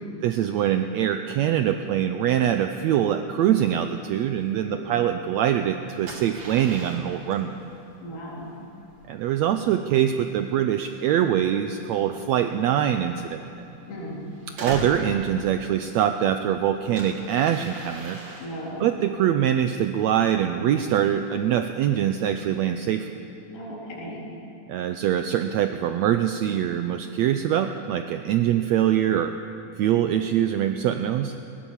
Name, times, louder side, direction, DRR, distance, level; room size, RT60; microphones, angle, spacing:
voice 1, 0.2-7.6 9.1-13.4 14.6-18.2 18.8-23.1 24.7-29.3 29.8-31.3, right 10 dB, 85° right, 8 dB, 1.6 m, -23 dB
sound 1, 4.1-22.5, right 2 dB, 55° right, 3.7 m, -43 dB
voice 2, 4.6-5.0 8.0-8.5 13.8-14.2 18.4-18.9 23.5-24.3, equal, 90° left, -5 dB, 5.5 m, -36 dB
20.0 x 19.5 x 7.2 m, 2.8 s
omnidirectional pair, 3.8 m